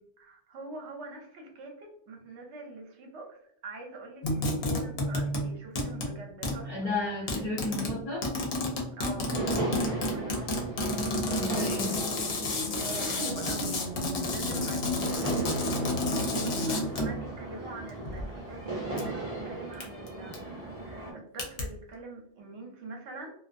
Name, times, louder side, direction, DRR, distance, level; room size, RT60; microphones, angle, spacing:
voice 1, 0.2-7.3 8.9-10.7 12.8-23.3, right 3 dB, 70° right, 1 dB, 1.0 m, -44 dB
sound 1, 4.2-5.5 5.8-6.2 6.4-6.7 7.3-17.2 17.9-18.2 19.0-19.1 19.8-20.1 20.3-20.4 21.4-21.6, left 1 dB, 65° left, 0.8 m, -30 dB
voice 2, 6.7-8.3 11.3-12.0, left 2 dB, 40° left, -5 dB, 0.6 m, -33 dB
sound 2, 9.3-21.1, right 2 dB, 35° right, 0.7 m, -37 dB
2.4 x 2.3 x 2.5 m, 0.65 s
omnidirectional pair, 1.2 m